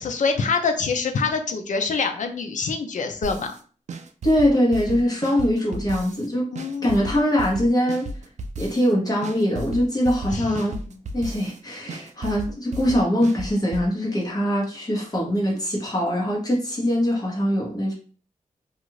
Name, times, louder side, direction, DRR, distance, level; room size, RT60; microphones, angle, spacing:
voice 1, 0.0-3.5 6.5-7.1 10.3-10.7, left 4 dB, 65° left, 6 dB, 0.5 m, -25 dB
sound 1, 3.2-3.6 3.9-6.3 6.6-8.9 9.2-11.6 11.9-13.9, right 1 dB, 60° right, 0.4 m, -34 dB
voice 2, 4.2-6.5 6.8-8.1 8.6-10.8 11.1-17.9, equal, 30° left, -3 dB, 1.0 m, -22 dB
2.5 x 2.4 x 3.0 m, 0.40 s
wide cardioid pair, 115°, 14 cm